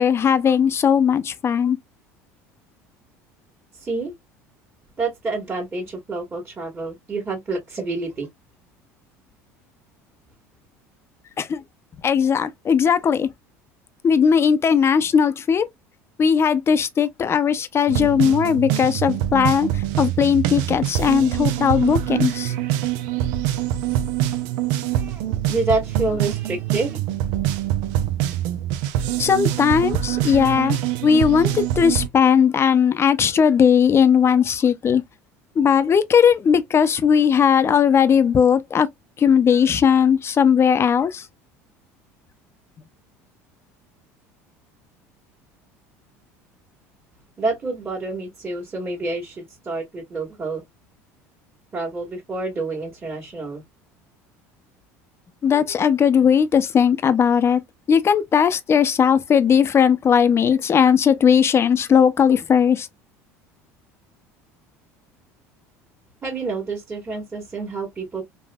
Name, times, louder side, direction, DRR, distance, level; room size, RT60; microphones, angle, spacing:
voice 1, 0.0-1.8 11.4-11.6 12.0-13.3 14.0-15.7 16.2-19.7 20.0-22.5 29.2-35.0 35.6-38.9 39.2-41.2 55.4-57.6 57.9-62.9, left 7 dB, 35° left, 0.6 m, -18 dB
voice 2, 3.8-4.1 5.0-8.3 24.9-27.0 47.4-50.6 51.7-53.6 66.2-68.2, right 3 dB, 25° right, 1.6 m, -28 dB
sound 1, 17.9-32.1, right 12 dB, 70° right, 0.5 m, -24 dB
3.4 x 2.5 x 2.2 m
hypercardioid pair, 80°, 8 cm